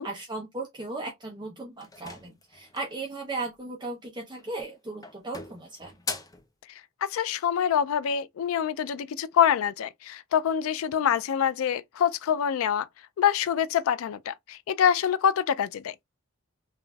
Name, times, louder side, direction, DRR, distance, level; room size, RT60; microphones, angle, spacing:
voice 1, 0.0-5.9, right 3 dB, 20° right, 0.7 m, -36 dB
sound 1, 1.8-3.0 4.3-4.7 5.0-6.5, left 4 dB, 15° left, 0.5 m, -39 dB
voice 2, 7.0-12.9 13.2-15.9, left 8 dB, 75° left, 0.3 m, -25 dB
5.7 x 2.5 x 2.2 m
head